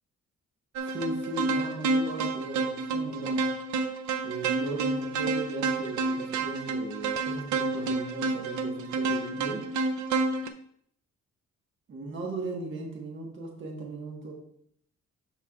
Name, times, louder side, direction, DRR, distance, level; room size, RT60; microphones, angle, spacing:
voice 1, 0.8-3.5 4.2-9.7 11.9-14.3, right 2 dB, 40° right, -1 dB, 1.3 m, -37 dB
sound 1, 0.8-10.5, right 3 dB, 75° right, 0.6 m, -29 dB
13.0 x 4.6 x 2.4 m, 0.68 s
cardioid pair, 165°, 29 cm